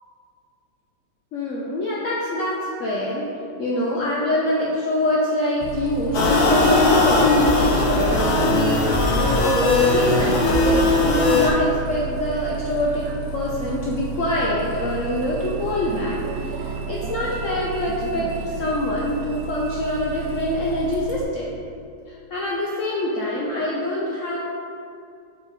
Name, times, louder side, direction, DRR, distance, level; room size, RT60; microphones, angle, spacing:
voice 1, 1.3-3.3 3.6-18.3 18.6-21.6 22.1-24.4, left 1 dB, 90° left, -5 dB, 0.6 m, -25 dB
Bus, 5.6-21.2, right 6 dB, 80° right, 0.8 m, -31 dB
sound 1, 6.1-11.5, left 2 dB, 60° left, 1.3 m, -18 dB
5.6 x 4.3 x 4.1 m, 2.4 s
omnidirectional pair, 2.1 m